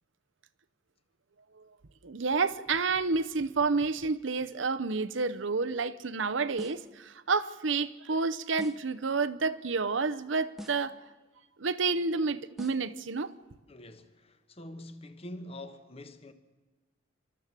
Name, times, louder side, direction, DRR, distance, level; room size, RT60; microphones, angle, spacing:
voice 1, 2.0-10.9 11.6-13.3, right 4 dB, 70° right, 0.8 m, -29 dB
sound 1, 6.6-7.0 8.6-9.0 10.6-11.0 12.6-13.0, right 1 dB, ahead, 1.0 m, -45 dB
voice 2, 13.7-16.3, left 1 dB, 30° left, 1.2 m, -45 dB
29.0 x 13.0 x 7.5 m
head